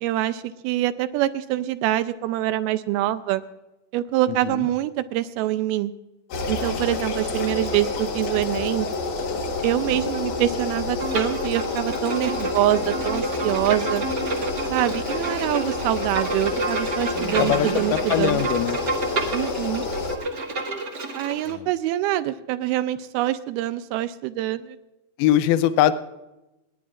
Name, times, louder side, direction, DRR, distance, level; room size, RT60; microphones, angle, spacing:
voice 1, 0.0-3.4 3.9-5.9 6.5-8.9 9.6-14.0 14.7-18.4 19.3-19.9 21.2-24.8, right 14 dB, 80° right, 12 dB, 2.3 m, -25 dB
voice 2, 4.3-4.7 17.4-18.8 21.5-21.7 25.2-25.9, left 11 dB, 80° left, 12 dB, 2.5 m, -22 dB
sound 1, 6.3-20.2, left 3 dB, 60° left, 2.6 m, -28 dB
Bowed string instrument, 11.0-21.5, right 2 dB, 60° right, 1.0 m, -30 dB
30.0 x 10.5 x 2.4 m, 0.99 s
omnidirectional pair, 4.7 m